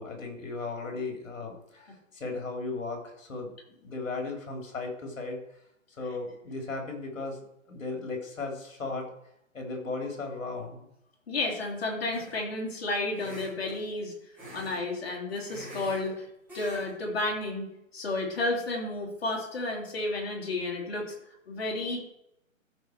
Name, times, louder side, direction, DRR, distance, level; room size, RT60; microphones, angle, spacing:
voice 1, 0.0-3.5 3.8-5.4 6.0-7.4 7.7-9.1 9.5-10.9, left 3 dB, 70° left, 2 dB, 3.5 m, -36 dB
voice 2, 11.3-14.1 14.5-16.3 16.5-21.1 21.5-22.0, left 2 dB, 50° left, -1 dB, 3.3 m, -32 dB
sound 1, 12.1-12.5 13.1-13.8 14.3-14.8 15.1-16.1 16.5-16.9 17.2-17.4, equal, 5° right, 3.1 m, -44 dB
14.0 x 5.0 x 4.6 m, 0.78 s
hypercardioid pair, 165°, 40 cm